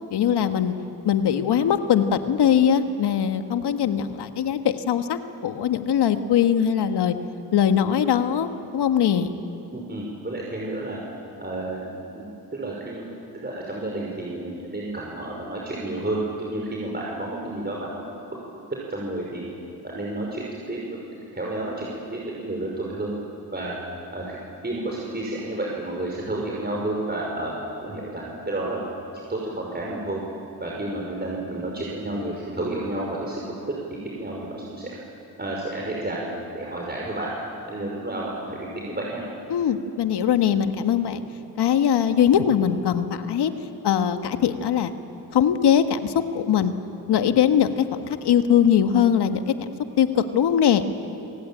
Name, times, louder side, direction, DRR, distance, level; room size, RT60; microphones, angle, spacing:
voice 1, 0.1-0.7 1.0-7.1 7.5-9.3 39.5-41.2 41.5-43.5 43.8-44.9 45.3-46.7 47.1-49.5 50.0-50.9, left 9 dB, 70° left, 8 dB, 1.7 m, -21 dB
voice 2, 9.7-11.0 11.4-13.0 13.3-18.0 18.9-19.5 19.8-21.0 21.3-23.1 23.5-23.7 24.1-24.4 24.6-27.5 27.8-28.8 29.3-30.2 30.6-33.7 34.2-34.9 35.4-37.3 37.7-39.2, right 2 dB, 25° right, -3 dB, 5.8 m, -31 dB
27.0 x 18.5 x 8.9 m, 2.8 s
supercardioid pair, 60°, 42 cm